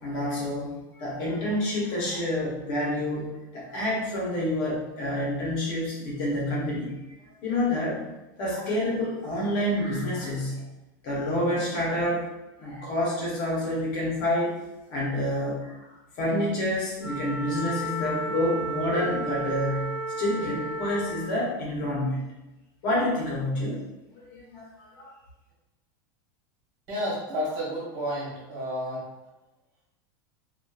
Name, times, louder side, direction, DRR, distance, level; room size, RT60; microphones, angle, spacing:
voice 1, 0.0-7.0 7.4-8.0 8.4-10.6 11.0-12.3 12.6-14.5 14.9-15.9 16.2-19.9 20.2-22.3 22.8-23.8 24.1-25.1, left 1 dB, 40° left, -4 dB, 0.8 m, -28 dB
Wind instrument woodwind instrument, 17.0-21.3, right 1 dB, 5° right, 0.5 m, -33 dB
voice 2, 26.9-29.0, equal, 45° right, -6 dB, 1.4 m, -31 dB
2.8 x 2.3 x 2.3 m, 1.0 s
supercardioid pair, 170°, 11 cm